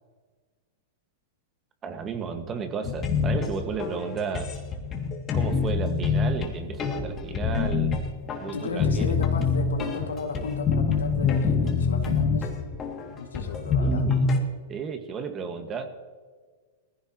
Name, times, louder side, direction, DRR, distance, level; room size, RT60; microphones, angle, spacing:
voice 1, 1.8-4.5 5.3-8.0 8.4-9.1 13.8-14.3 14.7-15.9, right 5 dB, 25° right, 6 dB, 1.7 m, -33 dB
sound 1, 2.8-14.4, left 5 dB, 30° left, 2.5 m, -26 dB
voice 2, 8.5-12.7 13.2-14.1, left 4 dB, 90° left, 3 dB, 2.3 m, -34 dB
20.0 x 15.5 x 3.1 m, 1.5 s
hypercardioid pair, 115°, 0 cm